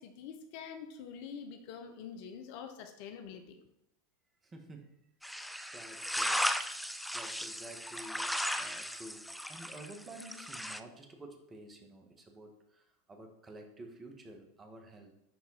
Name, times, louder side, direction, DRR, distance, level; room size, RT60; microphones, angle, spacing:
voice 1, 0.0-3.6, left 7 dB, 60° left, 7 dB, 1.0 m, -46 dB
voice 2, 4.4-5.0 5.7-6.8 7.1-15.1, right 1 dB, 20° right, 4 dB, 1.6 m, -51 dB
sound 1, 5.2-10.8, equal, ahead, 0.5 m, -36 dB
10.5 x 4.1 x 4.2 m, 0.83 s
hypercardioid pair, 95°, 0 cm